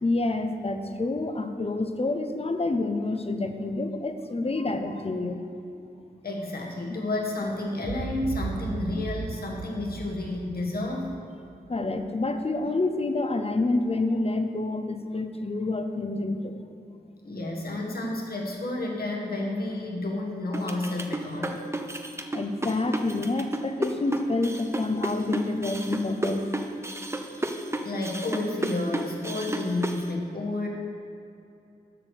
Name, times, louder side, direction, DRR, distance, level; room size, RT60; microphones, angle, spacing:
voice 1, 0.0-5.4 11.7-16.6 22.3-26.4, left 2 dB, 35° left, 7 dB, 0.8 m, -28 dB
voice 2, 6.2-11.1 17.2-21.6 27.8-30.7, left 2 dB, 60° left, -1 dB, 1.7 m, -31 dB
Boom, 7.8-12.1, right 5 dB, 35° right, 0.4 m, -37 dB
sound 1, 20.5-30.0, right 1 dB, 15° right, 0.8 m, -32 dB
7.8 x 6.0 x 6.6 m, 2.6 s
cardioid pair, 40°, 18 cm